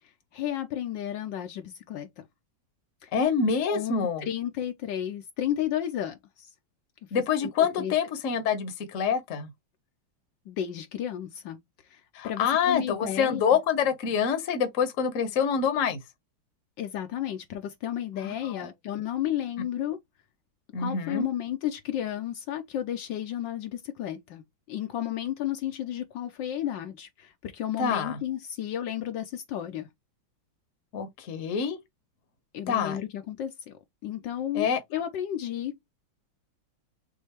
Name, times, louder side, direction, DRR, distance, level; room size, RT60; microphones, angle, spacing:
voice 1, 0.3-2.3 3.0-3.1 3.7-3.9 4.2-6.5 7.4-7.5 7.8-7.9 10.5-11.6 11.9-13.4 16.8-20.0 20.8-24.4 24.7-29.9 32.5-33.7 34.0-35.9, left 11 dB, 75° left, 1.3 m, -32 dB
voice 2, 3.1-4.3 7.1-9.5 12.1-16.0 18.2-18.7 20.7-21.3 27.8-28.2 30.9-31.8 32.7-33.0 34.5-34.8, left 7 dB, 50° left, 1.2 m, -26 dB
6.3 x 2.7 x 2.9 m
omnidirectional pair, 2.1 m